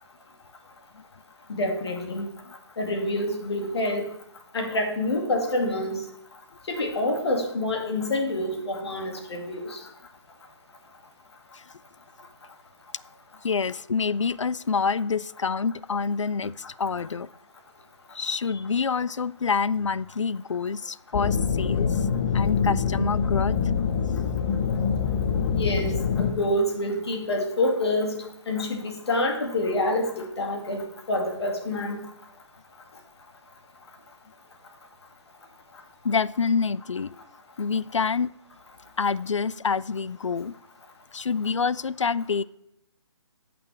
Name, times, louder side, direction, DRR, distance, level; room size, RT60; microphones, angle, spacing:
voice 1, 1.5-2.3 2.8-4.0 4.5-6.0 6.7-9.8 25.5-32.0, left 1 dB, 60° left, 2 dB, 2.4 m, -27 dB
voice 2, 13.4-17.3 18.1-22.1 22.3-23.6 36.0-37.1 37.6-38.3 39.0-40.5 41.1-42.4, left 5 dB, 85° left, 20 dB, 0.4 m, -27 dB
sound 1, 21.1-26.3, left 6 dB, 30° left, 0.9 m, -25 dB
15.0 x 6.0 x 3.4 m, 0.75 s
figure-of-eight pair, 140°, 15 cm